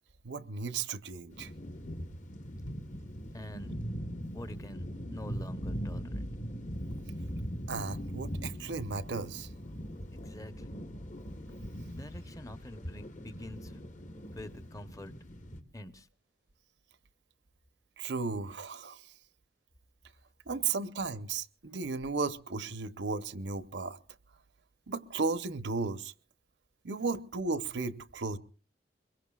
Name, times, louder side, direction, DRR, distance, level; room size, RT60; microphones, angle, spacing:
voice 1, 0.2-1.5 7.7-9.5 18.0-19.0 20.5-24.0 24.9-26.1 26.8-28.4, right 4 dB, 75° right, 0.8 m, -35 dB
sound 1, 1.3-15.6, equal, 45° left, 1.3 m, -40 dB
voice 2, 3.3-3.7 4.3-4.9 5.1-6.2 10.1-10.7 11.9-13.8 14.3-15.1 15.7-16.1, left 1 dB, 20° left, 0.8 m, -46 dB
25.0 x 22.5 x 2.4 m
head